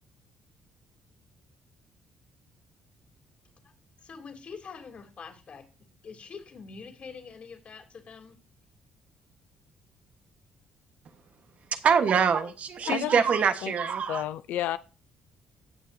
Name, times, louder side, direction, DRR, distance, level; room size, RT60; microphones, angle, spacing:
voice 1, 4.0-5.7 6.0-8.4, left 5 dB, 45° left, 3.1 m, -44 dB
voice 2, 11.7-14.2, right 6 dB, 55° right, 1.2 m, -24 dB
voice 3, 12.9-13.2 13.6-13.7 14.1-14.8, left 13 dB, 80° left, 0.4 m, -30 dB
17.0 x 6.5 x 2.7 m
cardioid pair, 90°, 3 cm